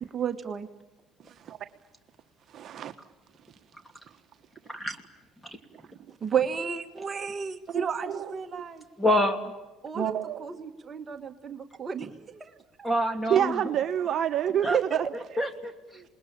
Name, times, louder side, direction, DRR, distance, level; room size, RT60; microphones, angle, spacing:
voice 1, 0.0-0.7 6.2-8.8 9.8-10.1 10.4-12.5 12.8-12.9 14.6-14.8, right 7 dB, 30° right, 6 dB, 1.6 m, -32 dB
voice 2, 2.5-2.9 7.7-8.6 9.9-10.5 13.3-15.0, right 9 dB, 50° right, 6 dB, 1.3 m, -28 dB
voice 3, 9.0-9.4 12.8-13.6 14.6-14.8 15.4-16.0, equal, 5° left, 8 dB, 2.8 m, -26 dB
28.0 x 21.0 x 8.8 m, 1.1 s
supercardioid pair, 100°, 0 cm